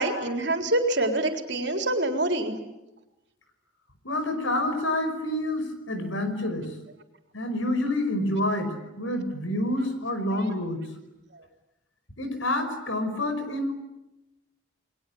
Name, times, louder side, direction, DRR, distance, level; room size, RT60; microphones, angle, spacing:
voice 1, 0.0-2.6, right 2 dB, 60° right, 4 dB, 3.9 m, -26 dB
voice 2, 4.0-6.7 7.3-10.8 12.2-13.7, left 1 dB, 75° left, 8 dB, 5.4 m, -28 dB
30.0 x 22.0 x 8.7 m, 0.96 s
head